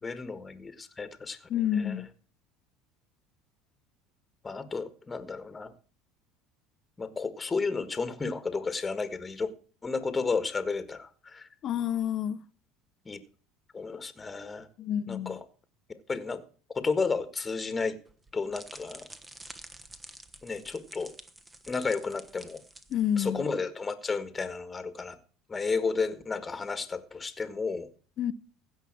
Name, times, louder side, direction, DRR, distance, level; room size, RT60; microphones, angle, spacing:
voice 1, 0.0-1.4 1.8-1.9 4.4-5.7 7.0-9.5 9.8-11.5 13.0-13.2 13.7-14.7 15.1-15.4 15.9-16.4 16.7-18.0 18.3-19.1 20.4-21.1 21.7-22.6 23.2-25.2 25.5-27.9, left 4 dB, 20° left, 1.6 m, -32 dB
voice 2, 1.5-2.1 11.6-12.4 14.8-15.4 22.9-23.5 28.2-28.3, left 9 dB, 50° left, 0.7 m, -29 dB
sound 1, 18.0-23.4, right 2 dB, 15° right, 1.2 m, -49 dB
16.0 x 5.8 x 7.5 m
supercardioid pair, 105°, 0 cm